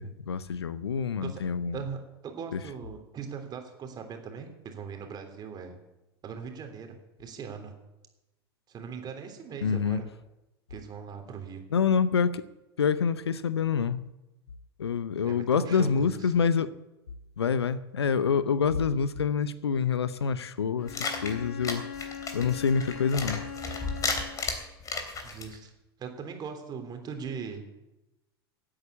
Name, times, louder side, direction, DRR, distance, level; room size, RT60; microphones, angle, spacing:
voice 1, 0.0-1.8 2.5-2.6 9.6-10.0 11.7-12.4 12.8-14.1 14.8-16.7 17.4-21.8 22.3-23.4, left 6 dB, 80° left, 0.8 m, -27 dB
voice 2, 1.7-5.8 6.2-7.7 8.7-10.0 10.7-11.6 15.2-16.3 25.2-25.7 26.0-27.8, right 6 dB, 30° right, 3.3 m, -40 dB
Bowed string instrument, 20.8-24.6, left 7 dB, 50° left, 3.3 m, -41 dB
sound 1, 20.9-25.5, left 4 dB, 25° left, 3.3 m, -34 dB
16.5 x 8.9 x 8.3 m
figure-of-eight pair, 90°, 13 cm